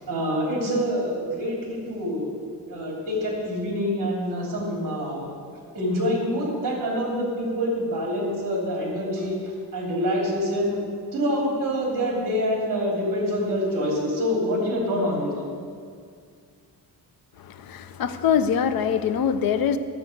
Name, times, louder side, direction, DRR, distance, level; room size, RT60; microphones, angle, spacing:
voice 1, 0.1-2.3 2.7-5.3 5.7-9.4 9.7-10.8 11.1-15.3, equal, 55° right, -1 dB, 2.9 m, -26 dB
voice 2, 17.4-19.8, left 7 dB, 65° left, 10 dB, 0.7 m, -23 dB
12.0 x 7.3 x 6.6 m, 2.2 s
wide cardioid pair, 150°, 38 cm